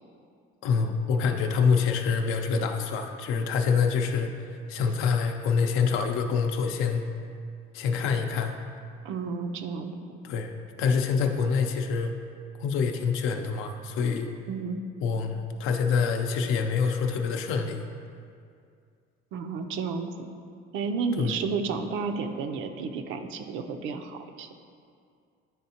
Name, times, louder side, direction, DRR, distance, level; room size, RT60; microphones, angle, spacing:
voice 1, 0.6-4.3 4.7-7.0 7.7-8.6 10.2-10.5 10.8-12.1 12.6-14.3 15.0-17.8 21.2-21.3, left 5 dB, 75° left, 5 dB, 0.6 m, -26 dB
voice 2, 9.0-9.9 14.5-14.8 19.3-20.1 20.7-24.5, right 5 dB, 70° right, 6 dB, 0.5 m, -31 dB
10.0 x 3.5 x 2.8 m, 2.3 s
cardioid pair, 150°, 21 cm